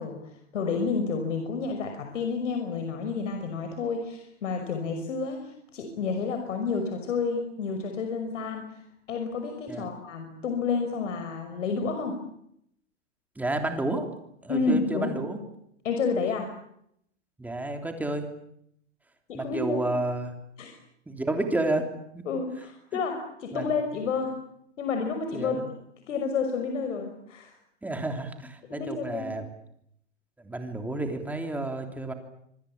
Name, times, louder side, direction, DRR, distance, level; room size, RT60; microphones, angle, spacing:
voice 1, 0.0-8.7 9.1-12.2 14.5-15.2 15.8-16.5 19.3-19.8 20.6-20.7 22.3-24.4 24.8-25.6 26.1-27.5 28.7-29.3, left 4 dB, 85° left, 5 dB, 5.8 m, -30 dB
voice 2, 13.4-14.1 14.4-15.4 17.4-18.3 19.3-20.3 21.1-21.9 22.1-22.2 23.5-23.7 23.9-24.0 25.3-25.7 27.8-29.4 30.4-32.1, right 2 dB, 5° right, 4 dB, 3.2 m, -30 dB
26.5 x 24.0 x 8.7 m, 0.74 s
supercardioid pair, 155°, 36 cm